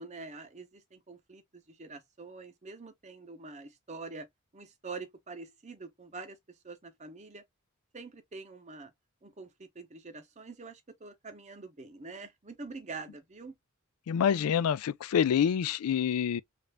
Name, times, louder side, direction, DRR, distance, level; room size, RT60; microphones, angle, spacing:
voice 1, 0.0-4.3 4.5-7.4 7.9-8.9 9.2-13.5, right 3 dB, 30° right, 0.8 m, -45 dB
voice 2, 14.1-16.4, left 8 dB, 80° left, 0.3 m, -27 dB
3.3 x 2.5 x 3.3 m
head